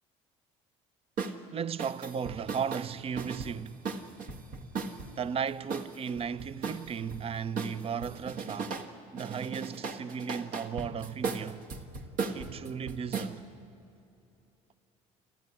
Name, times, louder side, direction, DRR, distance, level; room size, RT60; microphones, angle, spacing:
sound 1, 1.2-1.4 1.8-5.1 5.7-7.2 7.6-8.9 9.2-13.3, right 4 dB, 65° right, 1.9 m, -37 dB
voice 1, 1.5-3.8 5.2-11.6 12.3-13.4, right 7 dB, 40° right, 0.7 m, -35 dB
29.0 x 13.0 x 9.9 m
supercardioid pair, 75°, 15 cm